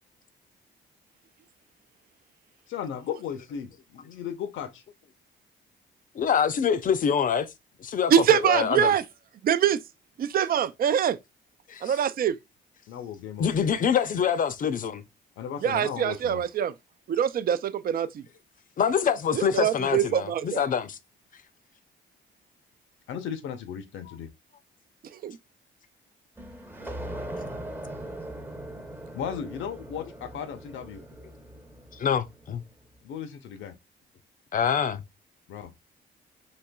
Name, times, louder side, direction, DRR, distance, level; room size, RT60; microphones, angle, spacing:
voice 1, 2.7-4.8 12.9-13.5 15.4-16.4 23.1-24.3 29.1-31.0 33.0-33.7 35.5-35.7, left 8 dB, 80° left, 0.7 m, -36 dB
voice 2, 6.1-7.5 7.8-8.9 11.7-11.9 13.4-15.0 18.8-21.0 24.1-24.2 31.9-32.6 34.5-35.0, left 7 dB, 45° left, 0.5 m, -25 dB
voice 3, 8.1-9.0 9.4-9.8 10.2-11.2 11.8-12.4 15.6-16.7 17.1-18.2 19.3-20.7 25.1-25.4, right 9 dB, 50° right, 0.4 m, -24 dB
sound 1, 26.4-32.7, right 1 dB, 10° right, 0.7 m, -40 dB
4.2 x 2.9 x 2.2 m
cardioid pair, 90°, 20 cm